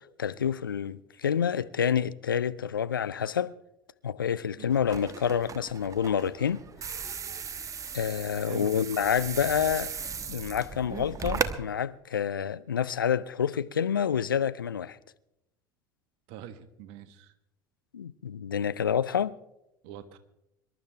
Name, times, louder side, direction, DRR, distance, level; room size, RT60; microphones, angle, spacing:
voice 1, 0.2-3.5 4.0-6.6 7.9-9.9 10.3-15.0 17.9-19.3, left 8 dB, 85° left, 0.5 m, -28 dB
sound 1, 4.7-11.6, right 6 dB, 30° right, 1.1 m, -37 dB
voice 2, 8.4-8.7 16.3-17.3 19.8-20.2, right 9 dB, 60° right, 1.3 m, -44 dB
25.5 x 12.0 x 3.4 m
figure-of-eight pair, 70°, 11 cm